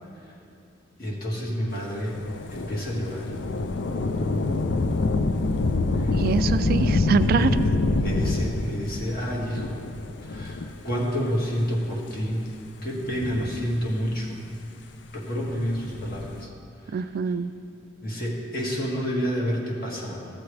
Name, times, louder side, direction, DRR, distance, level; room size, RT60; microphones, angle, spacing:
voice 1, 1.0-2.2 2.5-3.3 5.9-6.1 7.4-7.5 8.0-9.8 10.2-12.5 12.8-14.4 15.1-16.5 16.8-17.0 18.0-20.3, equal, 55° left, -3 dB, 1.7 m, -29 dB
Thunder / Rain, 2.1-11.1 11.9-12.0 12.9-14.2 15.7-16.4, left 3 dB, 75° left, 0.5 m, -26 dB
voice 2, 6.1-7.6 16.9-17.5, right 5 dB, 55° right, 12 dB, 0.3 m, -24 dB
14.0 x 7.0 x 3.3 m, 2.4 s
head